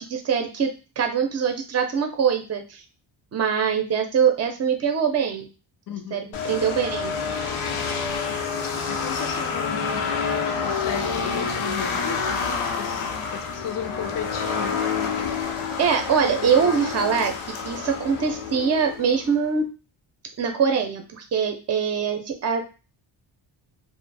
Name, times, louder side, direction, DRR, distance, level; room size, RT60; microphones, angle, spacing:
voice 1, 0.0-2.8 3.3-5.5 6.1-7.1 15.8-17.3 17.6-19.7 20.4-22.7, right 6 dB, 35° right, 5 dB, 0.5 m, -23 dB
voice 2, 5.9-6.4 8.9-10.1 10.5-14.8, left 8 dB, 45° left, 4 dB, 0.5 m, -35 dB
sound 1, 6.3-19.4, left 5 dB, 90° left, 0.6 m, -28 dB
2.5 x 2.1 x 3.2 m, 0.32 s
wide cardioid pair, 120°, 47 cm